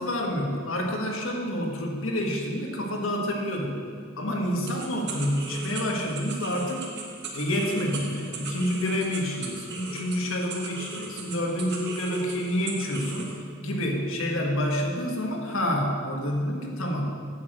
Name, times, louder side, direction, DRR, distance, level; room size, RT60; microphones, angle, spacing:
voice 1, 0.0-3.8 4.2-6.9 7.3-13.3 13.6-17.1, equal, 65° left, 0 dB, 1.5 m, -28 dB
sound 1, 4.7-13.4, right 4 dB, 55° right, 1.4 m, -39 dB
8.6 x 7.2 x 7.6 m, 2.3 s
head